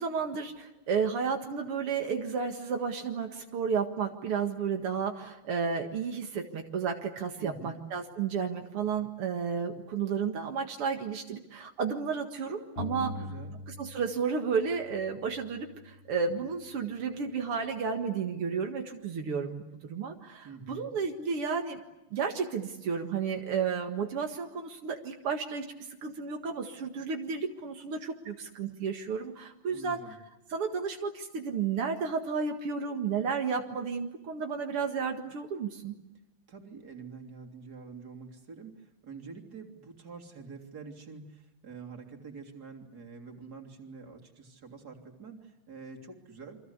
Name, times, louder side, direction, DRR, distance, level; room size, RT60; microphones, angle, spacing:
voice 1, 0.0-13.1 13.8-21.8 22.1-25.7 26.0-30.2 30.5-35.9, right 6 dB, 80° right, 3 dB, 2.7 m, -32 dB
voice 2, 7.4-7.8 13.0-13.6 20.4-20.9 29.7-30.2 36.5-46.6, right 5 dB, 45° right, 3 dB, 3.7 m, -46 dB
sound 1, 12.8-14.3 14.5-16.3, left 3 dB, 85° left, 4.6 m, -43 dB
29.0 x 25.0 x 8.1 m, 0.95 s
omnidirectional pair, 2.4 m